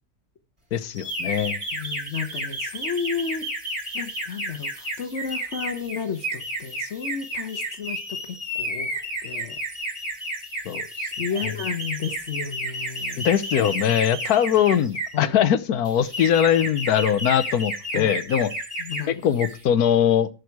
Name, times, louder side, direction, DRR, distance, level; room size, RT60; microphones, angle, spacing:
voice 1, 0.7-1.6 10.6-11.5 13.2-18.5 19.1-20.3, left 9 dB, 80° left, 15 dB, 1.4 m, -22 dB
sound 1, 1.0-15.2 15.8-19.0 19.3-19.6, right 1 dB, 20° right, 3.2 m, -32 dB
voice 2, 1.7-3.5 3.9-8.9 9.2-9.6 11.2-13.3 15.1-15.3 17.9-18.1 18.8-19.2, left 6 dB, 55° left, 10 dB, 1.3 m, -32 dB
13.5 x 6.6 x 4.7 m, 0.32 s
omnidirectional pair, 1.6 m